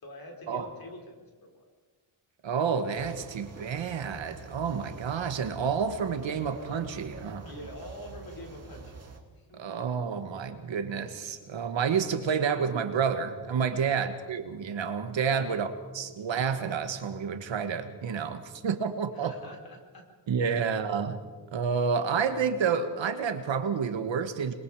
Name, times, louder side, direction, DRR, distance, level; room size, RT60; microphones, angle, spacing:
voice 1, 0.0-1.6 7.4-9.0 9.3-9.6 13.7-14.0 15.3-15.6 19.1-20.1 20.4-20.7, left 1 dB, 45° left, 3 dB, 4.5 m, -46 dB
voice 2, 2.4-7.5 9.6-15.7 15.9-19.3 20.3-21.2 21.5-24.5, right 6 dB, 65° right, 8 dB, 1.8 m, -29 dB
sound 1, 2.9-9.2, right 3 dB, 30° right, 2.3 m, -46 dB
27.5 x 22.0 x 5.0 m, 1.3 s
wide cardioid pair, 165°, 48 cm